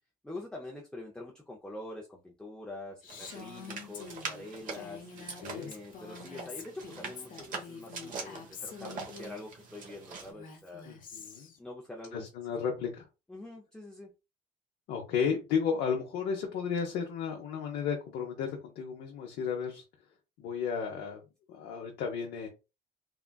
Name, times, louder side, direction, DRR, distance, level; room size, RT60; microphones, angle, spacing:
voice 1, 0.2-5.1 5.6-10.8 11.6-12.3 13.3-14.1, left 2 dB, 5° left, -2 dB, 0.5 m, -45 dB
Female speech woman speaking, 3.0-9.4 10.2-11.6, left 5 dB, 55° left, 0.9 m, -46 dB
sound 1, 3.1-10.3, right 4 dB, 50° right, 1.0 m, -44 dB
voice 2, 5.2-5.7 10.8-11.5 12.1-13.1 14.9-19.8 20.4-21.2 21.5-22.5, left 6 dB, 80° left, 1 dB, 0.7 m, -33 dB
3.6 x 2.3 x 2.2 m, 0.28 s
cardioid pair, 110°, 17 cm